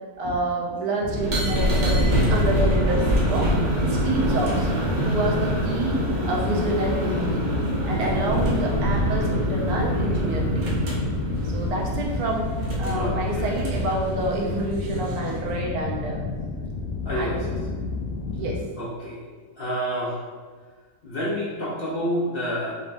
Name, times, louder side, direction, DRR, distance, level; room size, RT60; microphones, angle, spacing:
voice 1, 0.2-3.5 4.0-4.7 5.0-7.4 7.9-10.7 11.4-12.5 12.8-16.2 17.1-17.5 18.4-18.6, right 2 dB, 80° right, -1 dB, 1.2 m, -28 dB
sound 1, 1.0-18.6, left 3 dB, 85° left, 0.5 m, -31 dB
sound 2, 1.1-15.5, right 1 dB, 45° right, 0.6 m, -25 dB
voice 2, 8.0-8.4 12.9-13.6 17.1-17.5 18.8-19.3 19.6-20.2 21.0-22.7, equal, 50° left, -6 dB, 0.8 m, -29 dB
4.0 x 3.5 x 2.6 m, 1.5 s
omnidirectional pair, 1.6 m